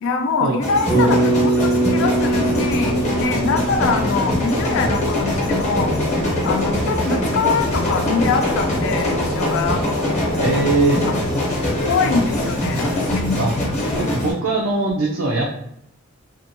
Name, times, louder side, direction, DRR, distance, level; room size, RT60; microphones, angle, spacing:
voice 1, 0.0-5.9 6.4-9.8 10.9-11.1 11.9-13.4 14.0-14.1, left 4 dB, 65° left, 5 dB, 0.4 m, -23 dB
sound 1, 0.6-14.3, left 1 dB, 35° left, 0.9 m, -23 dB
Bass guitar, 0.9-5.3, right 2 dB, 5° right, 0.5 m, -22 dB
sound 2, 2.1-14.0, left 1 dB, 85° left, 0.9 m, -28 dB
voice 2, 10.4-11.0 13.4-13.5 14.0-15.5, right 3 dB, 75° right, -1 dB, 0.4 m, -21 dB
2.7 x 2.2 x 2.6 m, 0.77 s
head